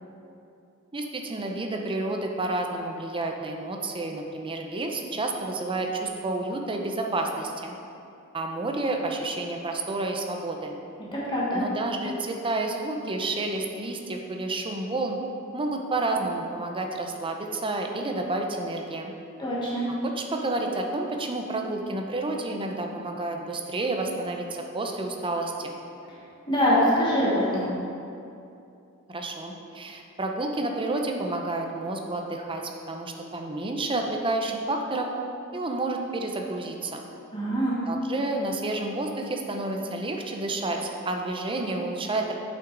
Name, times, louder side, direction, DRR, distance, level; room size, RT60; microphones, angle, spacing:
voice 1, 0.9-7.7 8.3-10.8 11.5-15.2 15.5-19.1 20.0-25.8 29.1-32.6 32.9-35.1 35.5-37.1 37.9-42.3, right 2 dB, 25° right, 2 dB, 0.6 m, -30 dB
voice 2, 11.1-11.6 19.4-19.8 26.5-27.7 37.3-37.8, equal, 20° left, -7 dB, 1.4 m, -24 dB
7.7 x 6.0 x 3.9 m, 2.6 s
head